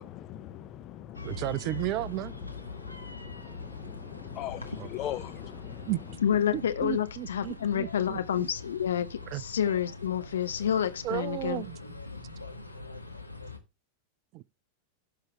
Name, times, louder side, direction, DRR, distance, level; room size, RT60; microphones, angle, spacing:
voice 1, 0.0-1.4 2.7-5.9, left 12 dB, 35° left, 1.0 m, -40 dB
sound 1, 1.1-13.6, left 3 dB, 90° left, 1.6 m, -43 dB
voice 2, 1.2-2.3 4.8-4.9 5.9-6.0 6.5-8.2 9.3-9.4 11.0-11.8 14.3-14.4, right 16 dB, 40° right, 0.4 m, -33 dB
voice 3, 6.2-11.6, left 9 dB, 65° left, 1.2 m, -29 dB
16.5 x 5.7 x 3.3 m
figure-of-eight pair, 90°, 0 cm